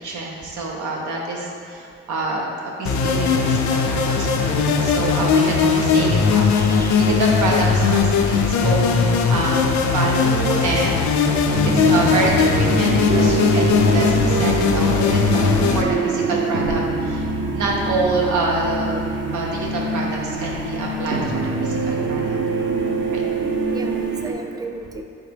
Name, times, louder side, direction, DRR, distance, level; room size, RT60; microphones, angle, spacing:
voice 1, 0.0-2.5 2.8-11.4 11.6-17.3 17.5-19.0 19.3-22.4 23.1-23.2, right 2 dB, 75° right, -2 dB, 0.7 m, -26 dB
sound 1, 2.9-15.8, left 5 dB, 70° left, 0.5 m, -19 dB
voice 2, 6.5-7.1 23.7-25.0, right 3 dB, 15° right, 4 dB, 0.3 m, -34 dB
sound 2, 11.5-24.3, right 3 dB, 40° right, 0.7 m, -24 dB
4.3 x 3.6 x 3.3 m, 2.4 s
cardioid pair, 90°, 30 cm